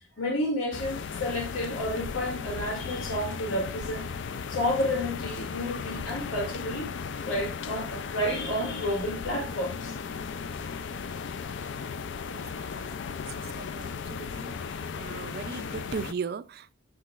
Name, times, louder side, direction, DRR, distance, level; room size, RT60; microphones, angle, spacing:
voice 1, 0.2-4.1 4.5-6.9 7.3-10.0, left 1 dB, 80° left, 2.1 m, -30 dB
sound 1, 0.7-16.1, left 5 dB, 60° left, 0.4 m, -36 dB
voice 2, 12.3-13.3 13.5-14.5 15.0-16.7, right 5 dB, 50° right, 0.4 m, -38 dB
8.2 x 6.7 x 2.4 m
head